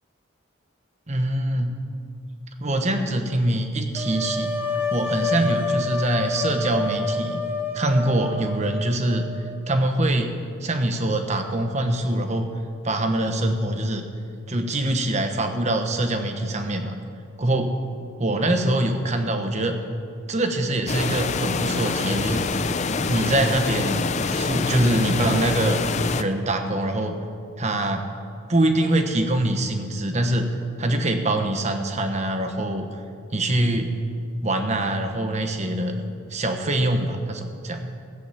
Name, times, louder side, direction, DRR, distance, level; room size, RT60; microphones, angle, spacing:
voice 1, 1.1-1.8 2.6-4.5 4.9-7.4 7.7-9.3 9.7-10.3 10.6-12.5 12.8-14.1 14.5-16.9 17.4-17.8 18.2-19.8 20.3-22.5 23.0-25.8 26.2-27.2 27.6-28.0 28.5-30.5 30.8-32.9 33.3-33.9 34.4-36.0 36.3-37.9, right 1 dB, 35° right, 6 dB, 1.1 m, -24 dB
sound 1, 4.0-9.8, left 3 dB, 10° right, 1.0 m, -28 dB
sound 2, 20.9-26.2, left 4 dB, 35° left, 0.5 m, -25 dB
15.0 x 9.3 x 7.1 m, 2.3 s
head